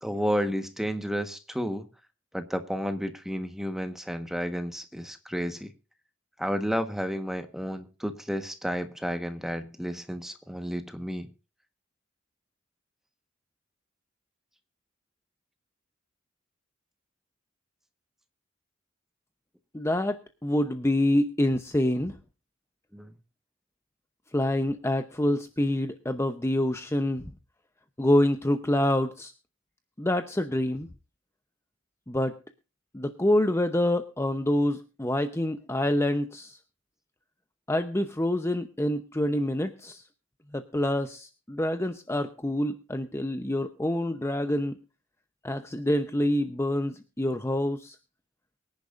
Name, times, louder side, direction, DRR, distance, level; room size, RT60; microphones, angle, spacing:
voice 1, 0.0-1.9 2.3-5.7 6.4-11.3 22.9-23.1, equal, ahead, 1.3 m, -31 dB
voice 2, 19.7-20.2 20.4-22.1 24.3-27.3 28.0-29.3 30.0-30.9 32.1-32.3 32.9-36.6 37.7-40.0 40.5-44.8 45.4-48.0, left 1 dB, 15° left, 0.8 m, -26 dB
24.0 x 10.5 x 2.5 m
head